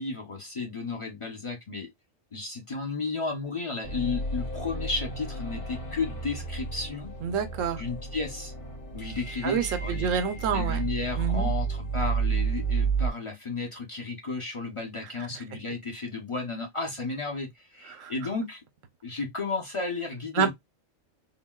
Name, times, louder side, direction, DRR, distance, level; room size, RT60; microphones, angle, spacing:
voice 1, 0.0-1.9 2.3-7.1 7.7-8.5 8.9-10.2 10.5-18.6 19.0-20.5, left 4 dB, 35° left, 0.6 m, -33 dB
sound 1, 3.8-13.1, right 5 dB, 65° left, 1.4 m, -31 dB
voice 2, 7.2-7.8 9.4-10.8 11.2-11.5 15.3-15.4 17.9-18.1 20.3-20.5, right 6 dB, 75° right, 1.0 m, -28 dB
3.7 x 2.2 x 2.2 m
omnidirectional pair, 1.4 m